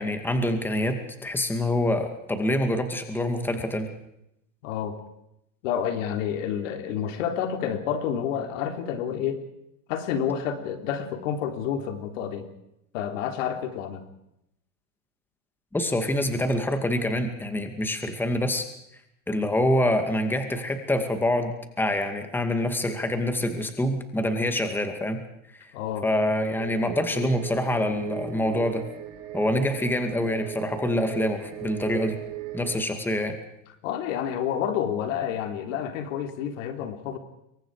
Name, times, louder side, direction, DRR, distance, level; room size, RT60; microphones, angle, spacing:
voice 1, 0.0-3.9 15.7-18.7 19.3-25.2 25.6-25.7 26.0-28.8 29.3-32.2 32.5-33.3, left 1 dB, 5° left, 6 dB, 2.3 m, -26 dB
voice 2, 4.6-5.0 5.6-9.4 9.9-12.5 12.9-14.0 25.7-26.1 33.8-37.2, left 8 dB, 70° left, 6 dB, 3.7 m, -29 dB
sound 1, 26.6-32.8, right 12 dB, 60° right, 6.3 m, -37 dB
27.0 x 23.5 x 5.0 m, 0.81 s
supercardioid pair, 140°, 40 cm